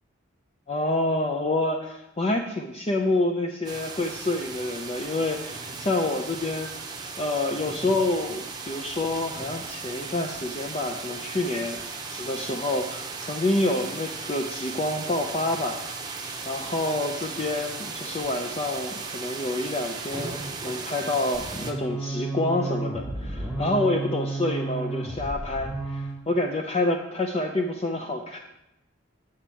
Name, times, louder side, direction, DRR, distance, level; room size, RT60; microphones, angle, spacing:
voice 1, 0.7-11.8 12.1-15.8 16.5-20.3 20.6-28.4, left 2 dB, 30° left, 3 dB, 0.5 m, -28 dB
sound 1, 3.6-21.7, right 4 dB, 20° right, 0.8 m, -36 dB
sound 2, 21.3-26.2, right 2 dB, 15° left, 1.4 m, -32 dB
8.6 x 6.1 x 4.4 m, 0.89 s
head